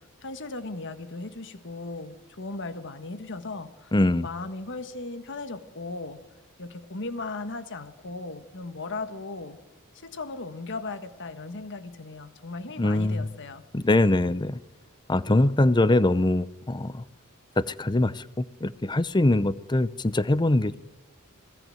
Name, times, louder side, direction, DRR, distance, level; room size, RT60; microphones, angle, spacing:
voice 1, 0.2-3.9 4.2-6.2 6.6-9.6 9.9-13.6, left 3 dB, 55° left, 1.5 m, -37 dB
voice 2, 3.9-4.3 12.8-13.3 13.7-14.6 15.1-17.0 17.6-20.7, left 2 dB, 20° left, 0.6 m, -23 dB
26.0 x 17.0 x 7.8 m
head